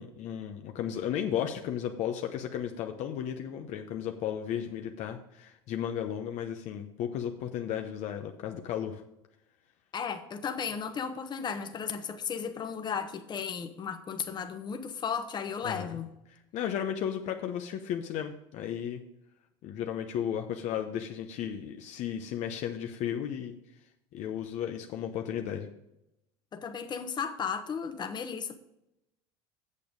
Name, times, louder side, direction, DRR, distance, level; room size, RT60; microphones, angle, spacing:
voice 1, 0.0-9.0 15.6-16.0 16.3-19.0 19.6-23.6 24.1-25.7, left 9 dB, 55° left, 5 dB, 0.8 m, -34 dB
voice 2, 9.9-16.1 26.5-28.6, left 6 dB, 30° left, 7 dB, 1.1 m, -35 dB
8.6 x 6.8 x 5.1 m, 0.86 s
supercardioid pair, 105°, 14 cm